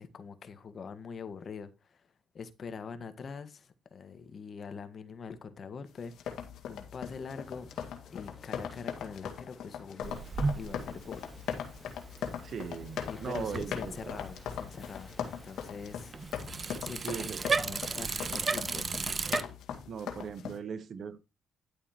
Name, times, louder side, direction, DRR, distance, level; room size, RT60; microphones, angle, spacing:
voice 1, 0.0-2.1 2.3-7.7 8.1-10.2 10.5-11.3 11.6-12.3 13.0-16.2 16.8-18.9, left 5 dB, 50° left, 1.6 m, -44 dB
sound 1, 6.0-20.6, left 8 dB, 75° left, 2.0 m, -40 dB
sound 2, 7.1-18.5, left 2 dB, 20° left, 2.4 m, -55 dB
Bicycle, 10.0-19.4, right 4 dB, 35° right, 0.8 m, -36 dB
voice 2, 12.4-14.2 17.0-17.4 19.9-21.2, right 6 dB, 55° right, 1.2 m, -39 dB
11.0 x 8.3 x 3.0 m
cardioid pair, 90°, 0 cm